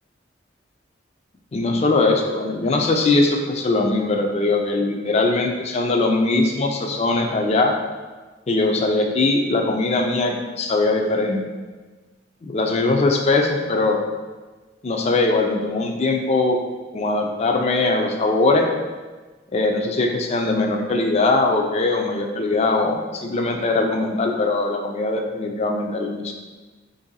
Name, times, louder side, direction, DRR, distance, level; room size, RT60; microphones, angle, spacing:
voice 1, 1.5-7.7 8.5-11.5 12.4-14.0 14.8-16.6 16.9-18.7 19.5-26.3, left 2 dB, 35° left, 2 dB, 0.4 m, -21 dB
3.0 x 2.6 x 3.9 m, 1.3 s
head